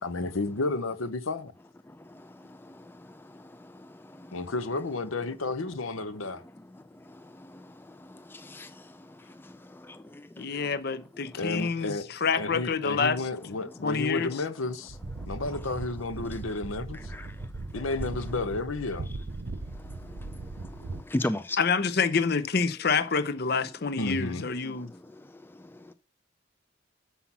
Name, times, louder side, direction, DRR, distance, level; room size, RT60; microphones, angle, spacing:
voice 1, 0.0-1.5 4.3-6.4 11.4-12.0 12.4-15.0 15.3-17.1 17.7-19.1 24.0-24.5, left 3 dB, 80° left, 0.8 m, -32 dB
voice 2, 1.8-4.5 6.2-6.4 6.7-10.2 15.2-15.7 16.9-17.9 19.6-21.6 24.6-25.9, left 1 dB, 10° left, 0.3 m, -40 dB
voice 3, 10.4-11.9 12.2-13.2 13.8-14.3 21.6-24.9, left 5 dB, 50° left, 0.7 m, -27 dB
sound 1, 14.9-21.0, right 2 dB, 55° right, 0.6 m, -38 dB
7.2 x 5.7 x 5.9 m
head